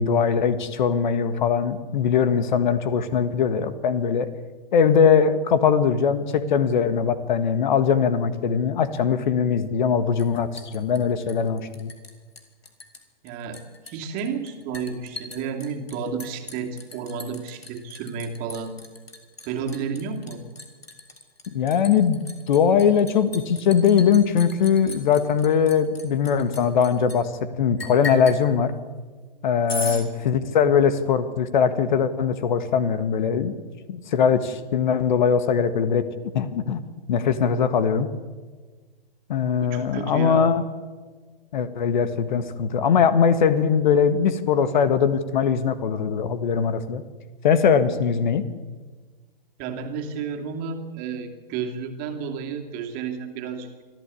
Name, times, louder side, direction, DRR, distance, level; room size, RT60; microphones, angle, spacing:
voice 1, 0.0-4.3 4.7-11.9 21.5-22.2 22.5-27.3 27.6-28.7 29.4-33.5 33.9-36.0 36.3-36.8 37.1-38.1 39.3-40.6 41.5-47.0 47.4-48.4, left 7 dB, 50° left, 12 dB, 1.6 m, -21 dB
Liquid, 10.2-12.1 12.4-13.0 13.3-27.2 27.8-28.4 29.7-30.0, left 2 dB, 85° left, 3.6 m, -38 dB
voice 2, 13.2-18.7 19.4-20.4 29.8-30.2 39.6-40.5 49.6-53.8, right 6 dB, 30° right, 4 dB, 2.6 m, -32 dB
25.0 x 14.0 x 8.4 m, 1.4 s
figure-of-eight pair, 125°, 30 cm